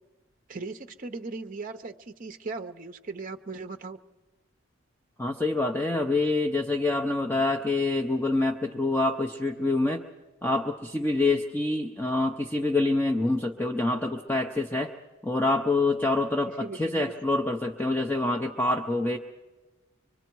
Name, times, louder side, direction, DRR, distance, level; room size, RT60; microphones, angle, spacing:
voice 1, 0.5-4.0 16.6-17.1, right 3 dB, 40° right, 7 dB, 0.6 m, -38 dB
voice 2, 5.2-10.0 10.4-14.9 15.2-19.2, left 2 dB, 10° left, 3 dB, 0.6 m, -26 dB
24.5 x 24.0 x 4.6 m, 1.2 s
head